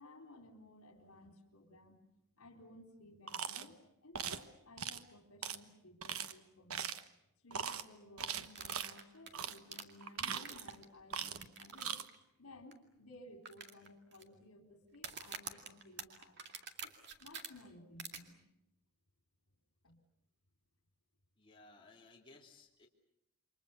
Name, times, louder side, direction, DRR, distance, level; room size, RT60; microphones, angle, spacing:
voice 1, 0.0-2.0 2.4-6.9 7.4-12.0 12.4-16.4 16.8-18.4 19.8-20.0, left 1 dB, 75° left, 5 dB, 3.9 m, -57 dB
sound 1, 3.3-3.7 4.1-4.4 4.8-5.0 5.4-5.6 6.0-6.3 6.7-7.1 7.5-7.8 8.2-8.9 9.3-9.6 10.0-10.8 11.1-11.5 11.7-12.0, right 8 dB, 75° right, 1.2 m, -40 dB
sound 2, 8.5-10.8 11.4-11.8 12.1-12.2 12.7-12.8 13.4-14.2 14.9-17.5 18.0-18.2, right 6 dB, 50° right, 2.3 m, -47 dB
voice 2, 21.4-22.9, left 3 dB, 25° left, -2 dB, 3.0 m, -60 dB
28.5 x 24.5 x 7.0 m, 0.83 s
head